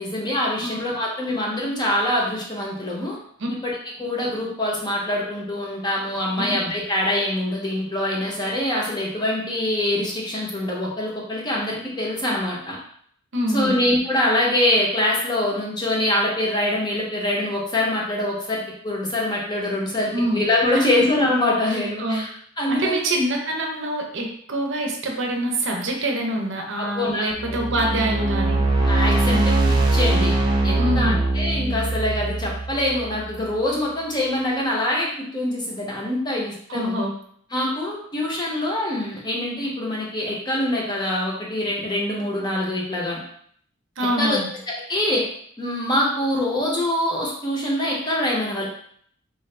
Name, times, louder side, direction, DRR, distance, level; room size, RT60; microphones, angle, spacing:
voice 1, 0.0-3.2 3.6-3.7 4.0-12.8 13.5-22.3 22.6-23.0 26.8-27.7 28.9-29.5 29.9-30.3 30.6-36.9 37.5-43.2 44.2-44.4 44.9-45.2 45.6-48.6, left 1 dB, 20° left, -3 dB, 0.7 m, -24 dB
voice 2, 13.3-13.8 20.1-20.4 20.7-20.9 21.7-22.2 22.7-28.6 30.8-31.2 36.7-37.1 44.0-44.5, right 1 dB, 60° right, 1 dB, 0.6 m, -25 dB
sound 1, 27.3-33.5, right 2 dB, 20° right, 0.4 m, -22 dB
3.7 x 2.5 x 3.2 m, 0.63 s
head